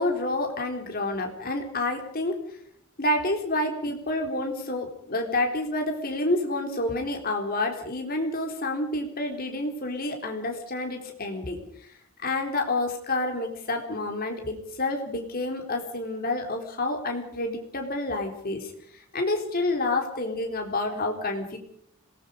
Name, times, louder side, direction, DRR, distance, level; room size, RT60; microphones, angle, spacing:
voice 1, 0.0-2.4 3.0-11.6 12.2-21.6, left 2 dB, 45° left, 2 dB, 3.9 m, -29 dB
26.0 x 19.0 x 5.2 m, 0.67 s
head